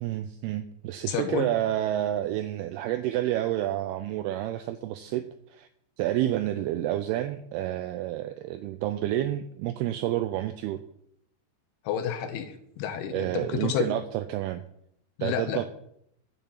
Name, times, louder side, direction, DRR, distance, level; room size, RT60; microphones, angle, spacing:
voice 1, 0.0-5.7 6.0-10.8 13.1-14.6 15.2-15.6, right 13 dB, 90° right, 11 dB, 2.3 m, -29 dB
voice 2, 1.1-1.5 11.8-13.9 15.2-15.6, left 9 dB, 75° left, 8 dB, 2.6 m, -30 dB
10.5 x 6.9 x 7.4 m, 0.73 s
omnidirectional pair, 5.1 m